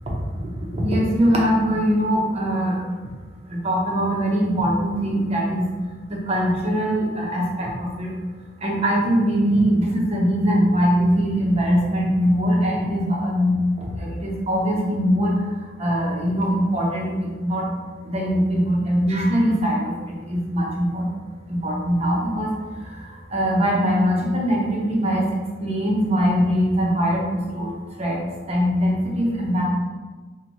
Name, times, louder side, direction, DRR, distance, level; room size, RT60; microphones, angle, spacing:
voice 1, 0.4-2.8 3.5-5.7 6.1-8.1 8.6-15.5 15.8-17.7 18.0-21.1 21.5-25.3 25.6-27.7 28.0-28.2 28.5-29.6, equal, 35° right, -3 dB, 0.8 m, -22 dB
2.9 x 2.8 x 4.0 m, 1.4 s
head